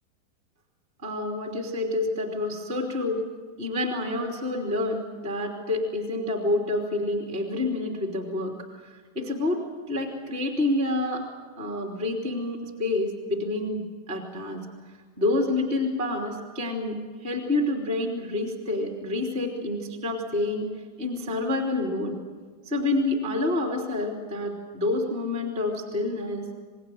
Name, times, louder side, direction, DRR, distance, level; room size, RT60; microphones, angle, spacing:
voice 1, 1.0-3.2 3.6-8.5 9.1-11.3 11.6-13.8 14.1-14.6 15.2-20.6 21.0-22.2 22.6-26.5, left 2 dB, 15° right, 1 dB, 2.5 m, -28 dB
27.5 x 21.0 x 7.7 m, 1.5 s
omnidirectional pair, 4.8 m